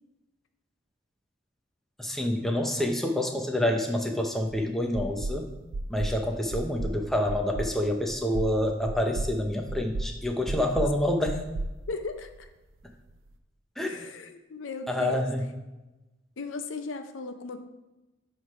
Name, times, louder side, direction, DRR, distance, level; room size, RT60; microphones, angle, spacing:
voice 1, 2.0-5.5 5.9-11.4 13.8-14.1 14.9-15.4, left 1 dB, ahead, 2 dB, 0.6 m, -27 dB
sound 1, 4.5-4.6 4.9-5.4 5.7-6.2 6.5-7.0 7.3-7.7 8.1-8.5 8.9-9.3 9.7-10.1 10.5-10.9 11.2-12.5, right 2 dB, 85° right, 0.5 m, -33 dB
voice 2, 11.9-12.5 13.8-15.3 16.4-17.6, left 3 dB, 75° left, 7 dB, 0.6 m, -37 dB
8.5 x 3.3 x 5.5 m, 1.1 s
head